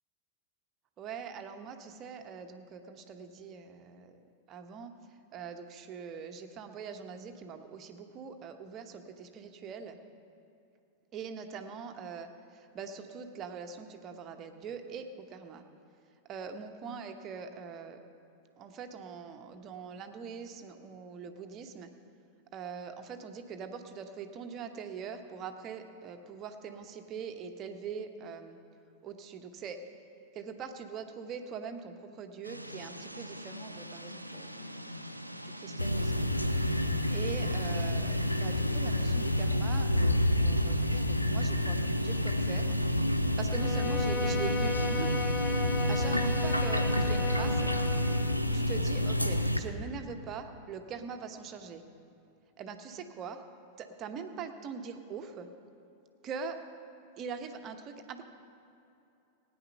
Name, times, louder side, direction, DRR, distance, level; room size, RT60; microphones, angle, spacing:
voice 1, 1.0-4.2 4.5-4.9 5.3-10.0 11.1-15.6 16.3-18.0 18.6-21.9 22.5-28.6 29.0-29.8 30.3-34.7 35.4-36.3 36.8-42.8 43.4-45.1 45.9-47.7 48.5-51.8 52.6-53.4 53.8-55.5 56.2-56.6 57.2-58.2, right 6 dB, 30° right, 6 dB, 1.0 m, -42 dB
sound 1, 32.4-39.5, right 1 dB, 90° right, 0.5 m, -43 dB
sound 2, 35.8-49.6, left 1 dB, 90° left, 0.5 m, -28 dB
Bowed string instrument, 43.5-48.4, left 3 dB, 15° left, 0.7 m, -36 dB
17.0 x 9.6 x 5.5 m, 2.7 s
figure-of-eight pair, 90°, 0 cm